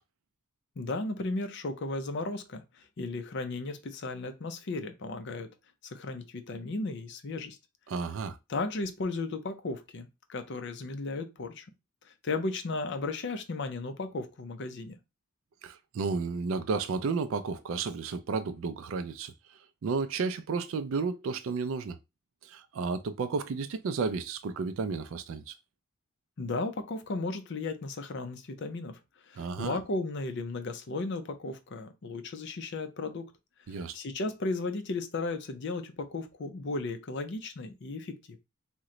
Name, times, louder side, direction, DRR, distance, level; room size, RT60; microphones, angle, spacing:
voice 1, 0.8-5.5 5.8-7.6 8.5-11.7 12.1-15.0 26.4-33.3 33.7-38.4, left 3 dB, 55° left, 0.5 m, -35 dB
voice 2, 7.9-8.4 15.6-19.3 19.8-22.0 22.4-25.5 29.4-29.8 33.7-33.9, right 4 dB, 65° right, 0.3 m, -32 dB
2.9 x 2.1 x 3.7 m
head